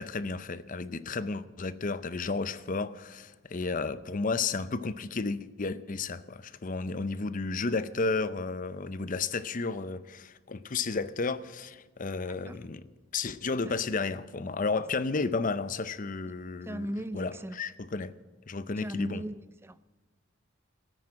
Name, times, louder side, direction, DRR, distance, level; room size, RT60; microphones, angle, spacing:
voice 1, 0.0-12.8 13.1-18.1 18.5-19.2, left 4 dB, 40° left, 0.6 m, -32 dB
voice 2, 16.7-17.5 18.8-19.8, right 1 dB, 10° right, 0.4 m, -37 dB
13.5 x 9.7 x 8.7 m
head